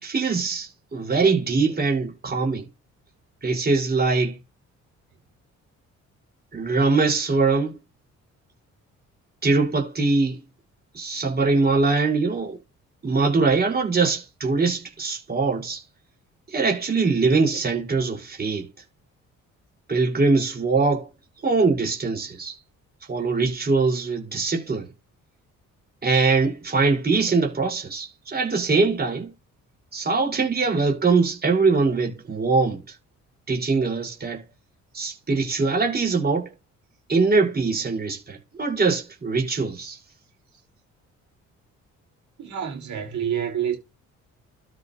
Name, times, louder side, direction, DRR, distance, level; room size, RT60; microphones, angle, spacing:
voice 1, 0.0-2.7 3.4-4.4 6.5-7.8 9.4-10.4 10.9-12.6 13.0-15.8 16.5-18.7 19.9-21.1 21.4-22.6 23.1-24.9 26.0-29.3 29.9-32.8 33.5-34.4 34.9-36.5 37.1-40.0, right 4 dB, 30° right, 5.6 m, -22 dB
voice 2, 42.4-43.8, right 9 dB, 70° right, 5.2 m, -27 dB
13.0 x 6.5 x 3.1 m
cardioid pair, 90°, 30 cm